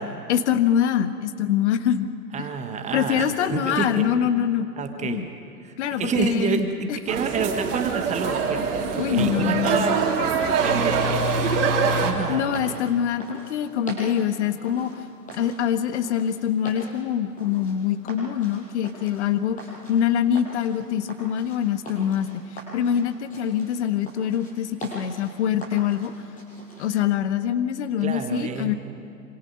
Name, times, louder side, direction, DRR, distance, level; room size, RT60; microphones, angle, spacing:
voice 1, 0.3-2.1 2.4-2.5 2.9-4.7 5.0-5.3 5.8-6.6 6.9-7.0 9.0-10.1 11.4-12.0 12.3-15.0 15.3-19.6 19.9-26.1 26.8-28.7, left 9 dB, 45° left, 10 dB, 1.4 m, -24 dB
voice 2, 2.3-4.3 4.8-5.2 5.6-11.7 12.0-12.5 28.0-28.7, right 6 dB, 15° right, 6 dB, 1.3 m, -29 dB
sound 1, 7.1-12.1, right 5 dB, 50° right, 3.3 m, -24 dB
sound 2, 11.2-26.9, right 1 dB, 15° left, 7.2 m, -42 dB
26.5 x 26.0 x 5.4 m, 2.7 s
figure-of-eight pair, 110°, 48 cm